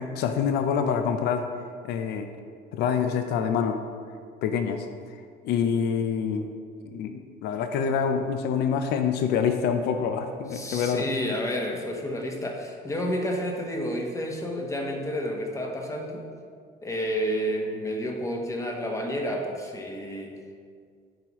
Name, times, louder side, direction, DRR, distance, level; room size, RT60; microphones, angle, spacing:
voice 1, 0.0-1.5 1.8-2.3 2.7-3.8 4.4-4.9 5.4-6.5 6.8-11.0, left 7 dB, 75° left, 7 dB, 0.5 m, -26 dB
voice 2, 10.5-16.2 16.8-20.4, equal, 20° left, 1 dB, 0.9 m, -30 dB
9.1 x 4.7 x 3.0 m, 2.1 s
cardioid pair, 110°, 17 cm